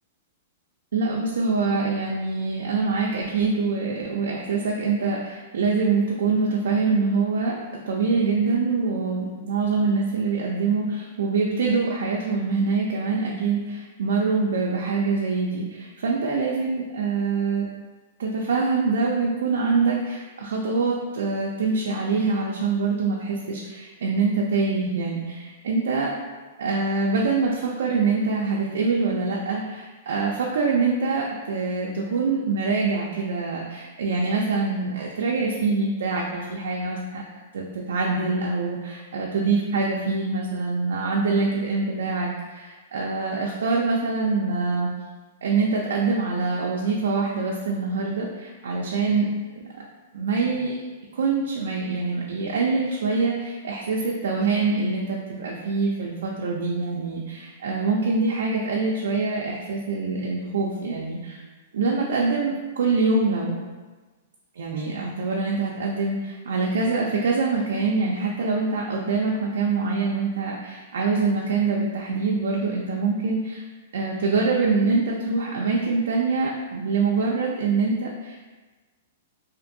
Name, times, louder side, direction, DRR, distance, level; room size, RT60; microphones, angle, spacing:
voice 1, 0.9-7.5 7.9-17.7 18.2-26.1 26.6-37.2 37.5-44.9 45.4-49.3 49.5-49.8 50.1-50.7 51.1-61.4 61.7-63.6 64.6-73.6 73.9-78.4, right 4 dB, 80° right, -2 dB, 0.4 m, -24 dB
2.5 x 2.5 x 2.6 m, 1.3 s
hypercardioid pair, 160°, 0 cm